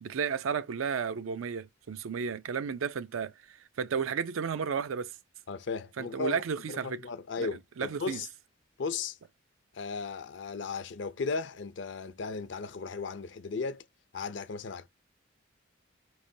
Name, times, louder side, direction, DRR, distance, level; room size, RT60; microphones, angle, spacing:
voice 1, 0.0-5.1 6.0-7.0 7.4-7.5 7.8-8.2, right 6 dB, 80° right, 0.4 m, -33 dB
voice 2, 5.5-6.4 6.7-8.3 8.8-9.2 9.7-13.9 14.1-14.9, left 4 dB, 60° left, 0.5 m, -36 dB
5.0 x 3.2 x 2.7 m
head